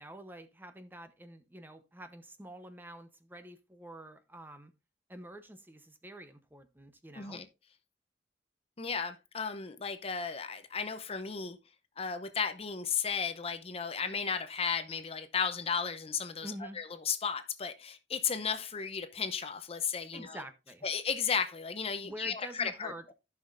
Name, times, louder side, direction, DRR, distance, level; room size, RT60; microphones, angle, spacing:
voice 1, 0.0-4.7 5.1-7.4 16.4-16.8 20.1-20.8 22.0-23.1, right 1 dB, 10° right, 0.7 m, -47 dB
voice 2, 7.2-7.5 8.8-11.6 12.0-20.4 20.8-22.9, left 6 dB, 35° left, 0.7 m, -34 dB
14.5 x 5.8 x 2.5 m
head